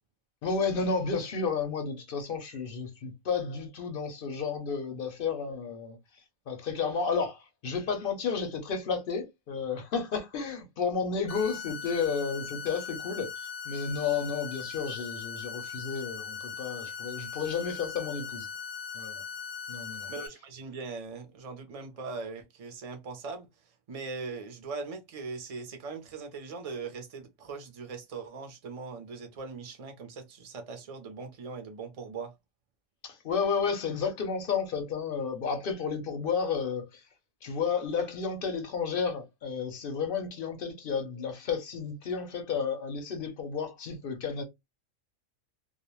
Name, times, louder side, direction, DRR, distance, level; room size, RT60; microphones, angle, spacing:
voice 1, 0.4-6.0 6.5-18.5 18.9-19.2 19.7-20.1 33.0-37.0 37.4-44.4, left 5 dB, 55° left, 0.7 m, -32 dB
sound 1, 11.3-20.3, left 6 dB, 85° left, 1.0 m, -39 dB
voice 2, 20.1-23.5 23.9-32.3, right 4 dB, 40° right, 0.5 m, -40 dB
2.4 x 2.1 x 3.0 m
omnidirectional pair, 1.3 m